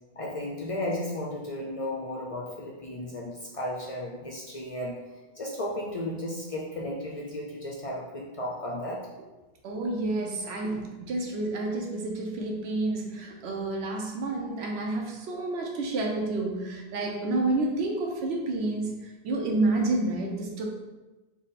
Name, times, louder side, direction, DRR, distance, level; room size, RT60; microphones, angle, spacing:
voice 1, 0.2-5.0 5.4-9.1, left 1 dB, 45° left, -3 dB, 0.4 m, -34 dB
voice 2, 9.6-19.0 19.2-20.7, right 2 dB, 75° right, 1 dB, 1.0 m, -29 dB
3.7 x 2.2 x 4.0 m, 1.1 s
omnidirectional pair, 1.1 m